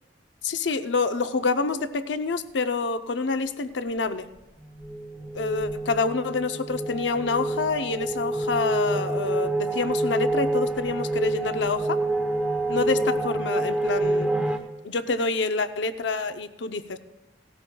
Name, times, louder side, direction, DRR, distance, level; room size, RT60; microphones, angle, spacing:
voice 1, 0.4-4.3 5.3-12.0 12.7-14.3 14.8-17.0, left 4 dB, 75° left, 10 dB, 0.6 m, -27 dB
sound 1, 4.6-14.6, right 2 dB, 5° right, 0.8 m, -27 dB
18.0 x 13.5 x 2.3 m, 1.0 s
head